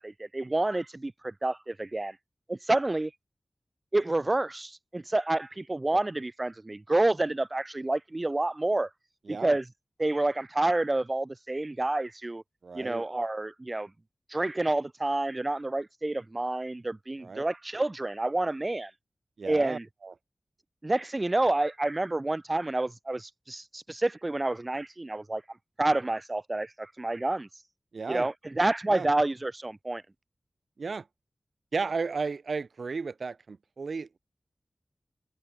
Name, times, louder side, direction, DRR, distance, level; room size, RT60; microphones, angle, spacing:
voice 1, 0.0-2.2 2.5-3.1 3.9-8.9 9.3-9.7 10.0-12.4 12.8-13.9 14.3-18.9 19.5-19.9 20.8-25.4 25.8-27.5 28.1-30.0, right 2 dB, 30° right, 1.9 m, -29 dB
voice 2, 9.3-9.6 12.6-13.0 17.2-17.4 19.4-20.1 27.9-28.3 28.9-29.1 30.8-31.0 31.7-34.2, right 4 dB, 75° right, 1.3 m, -34 dB
wide cardioid pair, 95°, 0 cm